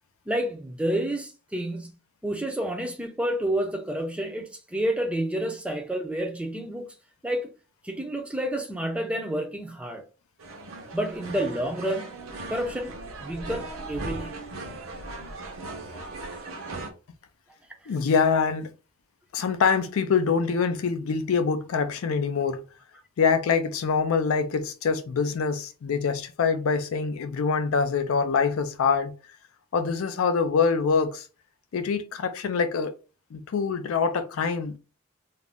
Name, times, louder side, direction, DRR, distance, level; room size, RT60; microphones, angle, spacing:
voice 1, 0.3-6.9 7.2-7.5 7.8-10.0 10.9-12.1 12.5-14.4, right 1 dB, 5° right, 0.4 m, -29 dB
sound 1, 10.4-16.9, right 2 dB, 85° right, 0.7 m, -38 dB
voice 2, 17.9-18.7 19.3-22.6 23.2-29.1 29.7-31.3 31.7-32.9 33.3-34.8, left 5 dB, 80° left, 0.4 m, -25 dB
2.4 x 2.0 x 3.5 m
head